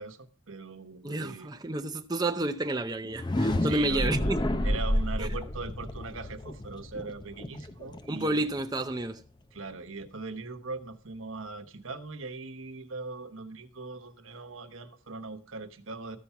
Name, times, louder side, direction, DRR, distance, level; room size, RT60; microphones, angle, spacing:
voice 1, 0.0-1.5 3.6-4.3 4.6-8.4 9.5-16.2, right 3 dB, 80° right, 1.1 m, -40 dB
voice 2, 1.0-4.5 5.2-5.3 8.1-9.2, right 2 dB, 20° right, 0.6 m, -30 dB
sound 1, 3.1-8.9, left 1 dB, 20° left, 0.6 m, -30 dB
13.5 x 5.7 x 5.8 m
head